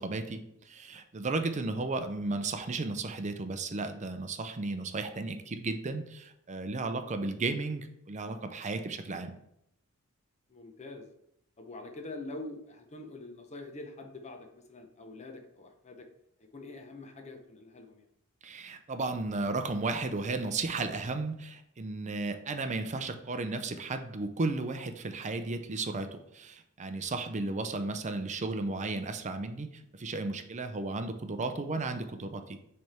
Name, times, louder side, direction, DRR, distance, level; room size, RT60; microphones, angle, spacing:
voice 1, 0.0-9.3 18.4-32.6, right 3 dB, 35° right, 7 dB, 0.6 m, -34 dB
voice 2, 10.5-11.1 11.6-16.1 16.5-18.1, left 2 dB, 30° left, 4 dB, 0.8 m, -45 dB
6.3 x 3.4 x 4.3 m, 0.78 s
head